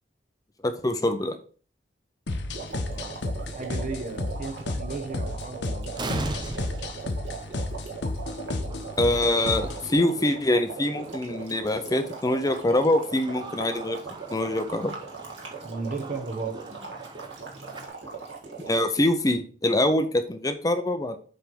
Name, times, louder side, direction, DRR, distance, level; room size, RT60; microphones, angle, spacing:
voice 1, 0.6-1.4 9.0-14.0 14.3-14.9 18.7-21.2, left 1 dB, 20° left, 8 dB, 0.6 m, -24 dB
sound 1, 2.3-9.9, left 2 dB, 75° left, 1.0 m, -32 dB
sound 2, 2.5-19.0, right 5 dB, 90° right, 1.9 m, -40 dB
sound 3, 2.6-2.8 3.7-3.8 4.1-4.2 5.4-5.5 5.9-17.9, right 2 dB, 25° right, 0.7 m, -41 dB
voice 2, 2.9-6.1 15.6-16.9, right 3 dB, 45° right, 7 dB, 1.0 m, -36 dB
7.7 x 3.4 x 5.3 m, 0.41 s
head